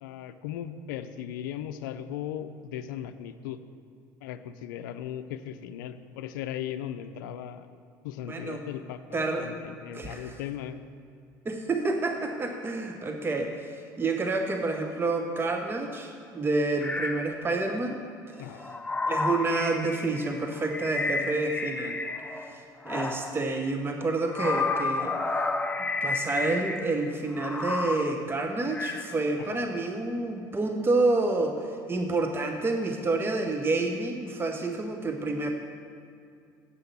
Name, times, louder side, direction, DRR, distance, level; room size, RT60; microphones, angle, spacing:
voice 1, 0.0-3.6 4.2-7.7 8.0-10.8 18.4-18.6 29.4-29.6, left 10 dB, 80° left, 11 dB, 0.5 m, -37 dB
voice 2, 8.3-8.6 9.1-9.5 9.9-10.4 11.4-18.0 18.4-18.6 19.1-22.0 22.5-25.1 26.0-35.5, right 2 dB, 20° right, 4 dB, 0.8 m, -29 dB
sound 1, 16.8-17.3 18.4-22.5 22.9-23.5 24.2-27.1 27.3-28.1 28.7-29.2, left 3 dB, 10° left, 0.6 m, -31 dB
8.2 x 5.8 x 6.9 m, 2.4 s
hypercardioid pair, 70°, 10 cm